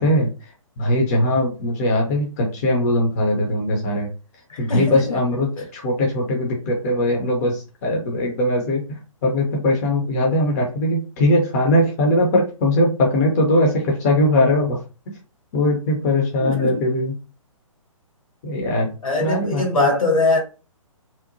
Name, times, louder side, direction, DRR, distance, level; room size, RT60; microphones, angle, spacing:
voice 1, 0.0-4.1 4.6-14.8 15.1-15.2 15.5-17.1 18.4-18.9 19.2-19.9, left 1 dB, 30° left, 0.6 m, -20 dB
voice 2, 4.5-5.1 16.4-16.8 19.0-20.4, left 2 dB, 75° left, 1.1 m, -21 dB
2.7 x 2.0 x 2.6 m
figure-of-eight pair, 130°, 18 cm